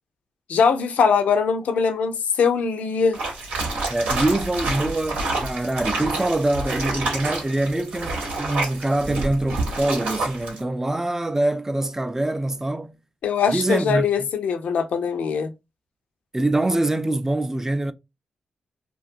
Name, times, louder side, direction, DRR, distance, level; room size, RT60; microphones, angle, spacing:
voice 1, 0.5-3.2 13.2-15.5, left 6 dB, 80° left, 0.5 m, -21 dB
sound 1, 3.1-10.6, right 2 dB, 85° right, 0.9 m, -28 dB
voice 2, 3.9-13.0 13.5-14.1 16.3-17.9, right 2 dB, 20° right, 0.4 m, -24 dB
2.4 x 2.4 x 2.5 m
supercardioid pair, 50°, 2 cm